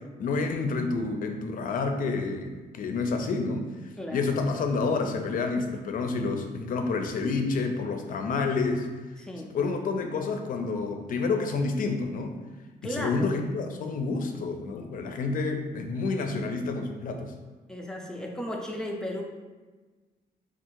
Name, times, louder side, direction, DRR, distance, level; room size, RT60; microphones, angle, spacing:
voice 1, 0.2-3.7 4.1-8.9 9.5-12.4 12.9-17.3, left 4 dB, 60° left, 5 dB, 0.5 m, -29 dB
voice 2, 4.0-4.4 9.2-9.5 12.8-13.3 17.7-19.2, left 1 dB, 5° left, -1 dB, 0.5 m, -35 dB
3.6 x 2.4 x 4.5 m, 1.3 s
wide cardioid pair, 155°, 16 cm